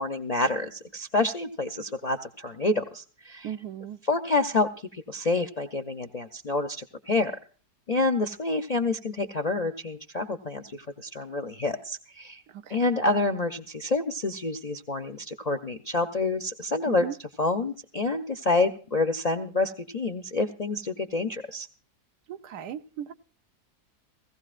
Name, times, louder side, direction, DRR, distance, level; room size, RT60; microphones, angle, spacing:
voice 1, 0.0-3.5 4.1-7.3 7.9-12.4 12.7-17.1 17.4-21.7, left 3 dB, 45° left, 0.5 m, -28 dB
voice 2, 3.4-4.0 12.5-12.9 16.9-17.2 22.3-23.1, right 10 dB, 80° right, 1.3 m, -37 dB
17.0 x 16.0 x 2.5 m
omnidirectional pair, 1.7 m